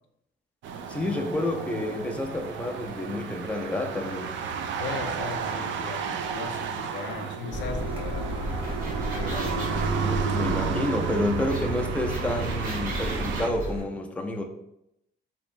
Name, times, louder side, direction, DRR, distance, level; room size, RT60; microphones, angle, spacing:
sound 1, 0.6-13.5, right 6 dB, 70° right, 0.4 m, -32 dB
voice 1, 0.9-4.3 10.0-14.4, left 1 dB, 5° left, 3 dB, 0.4 m, -29 dB
voice 2, 4.8-8.3 9.1-10.0, left 5 dB, 65° left, 6 dB, 0.4 m, -38 dB
Car, 7.5-13.8, equal, 25° right, 1.1 m, -33 dB
sound 2, 8.4-9.8 11.5-11.6 11.9-13.7, right 1 dB, 45° right, 1.4 m, -39 dB
3.4 x 3.0 x 2.5 m, 0.80 s
cardioid pair, 90°, 20 cm